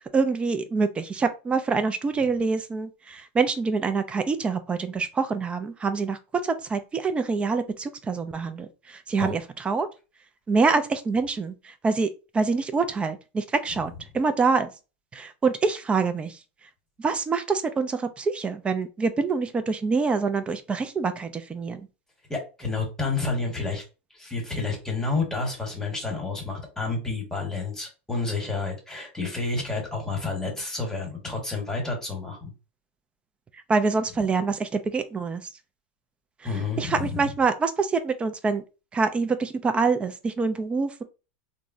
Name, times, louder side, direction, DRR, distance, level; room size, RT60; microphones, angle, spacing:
voice 1, 0.1-9.9 10.5-14.7 15.1-16.4 17.0-21.8 33.7-35.5 36.4-38.6 38.9-41.0, right 4 dB, 15° right, 0.4 m, -26 dB
voice 2, 22.3-23.8 24.1-32.5 36.4-37.2, left 3 dB, 5° left, 1.2 m, -30 dB
3.5 x 2.0 x 2.5 m
hypercardioid pair, 120°, 6 cm